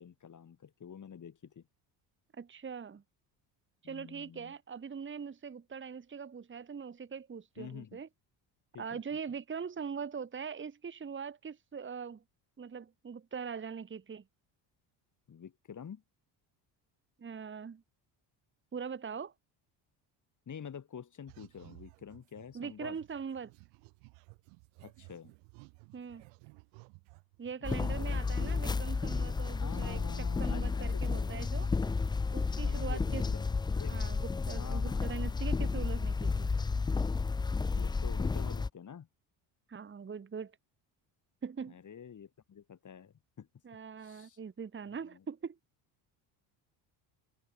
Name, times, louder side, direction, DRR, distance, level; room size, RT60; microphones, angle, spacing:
voice 1, 0.0-1.7 3.8-4.5 7.6-8.0 8.7-9.0 15.3-16.0 20.5-23.0 24.8-25.3 27.6-28.8 29.6-31.5 32.7-34.0 34.5-35.5 37.6-39.1 41.7-43.5 44.0-44.4 45.1-45.2, left 7 dB, 40° left, 5.8 m, -48 dB
voice 2, 2.3-3.0 3.8-8.1 8.8-12.2 12.6-14.2 17.2-17.8 18.7-19.3 22.5-23.5 25.9-26.2 27.4-31.7 32.3-33.2 33.9-36.5 39.7-40.6 41.4-41.8 43.6-45.6, right 6 dB, 25° right, 1.7 m, -42 dB
demonic french voice, 21.3-29.1 29.5-32.6 32.8-33.3, right 38 dB, 90° right, 2.7 m, -57 dB
sound 1, 27.6-38.7, left 4 dB, 10° left, 0.4 m, -32 dB
supercardioid pair, 95°, 46 cm